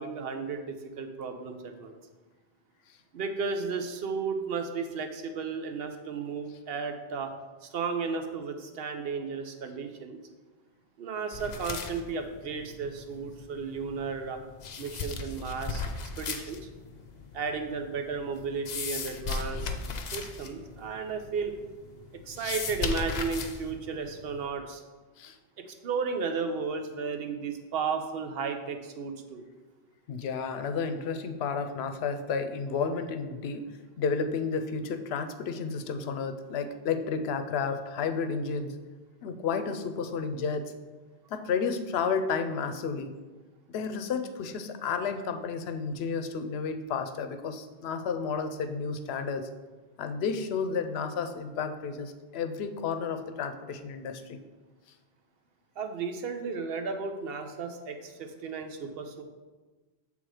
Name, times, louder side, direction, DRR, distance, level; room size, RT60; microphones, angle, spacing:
voice 1, 0.0-2.0 3.1-7.3 7.6-10.2 11.0-14.4 14.8-15.8 16.2-16.6 17.3-19.6 20.1-21.5 22.3-24.8 25.6-29.4 55.8-59.2, right 5 dB, 70° right, 7 dB, 0.9 m, -34 dB
sound 1, 11.3-24.5, left 5 dB, 50° left, 0.6 m, -38 dB
voice 2, 30.1-33.6 34.0-38.7 39.2-40.7 41.3-43.1 43.7-49.5 50.0-54.4, left 5 dB, 80° left, 8 dB, 0.8 m, -32 dB
7.7 x 3.6 x 4.8 m, 1.3 s
omnidirectional pair, 1.1 m